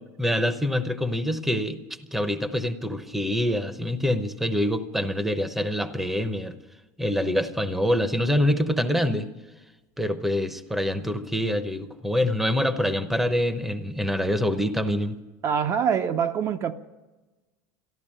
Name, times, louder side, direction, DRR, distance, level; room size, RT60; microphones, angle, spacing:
voice 1, 0.2-1.8 2.1-6.6 7.0-9.3 10.0-15.2, left 1 dB, 5° right, 0.9 m, -25 dB
voice 2, 15.4-16.7, right 7 dB, 35° right, 0.7 m, -24 dB
14.0 x 12.0 x 8.8 m
supercardioid pair, 145°, 8 cm